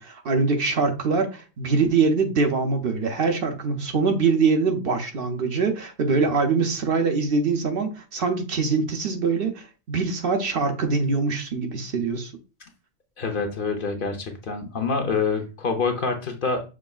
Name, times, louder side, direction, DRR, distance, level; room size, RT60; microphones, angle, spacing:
voice 1, 0.0-12.3, right 4 dB, 60° right, 0.9 m, -23 dB
voice 2, 13.2-16.6, left 4 dB, 55° left, 0.9 m, -26 dB
6.1 x 3.3 x 2.3 m
omnidirectional pair, 1.2 m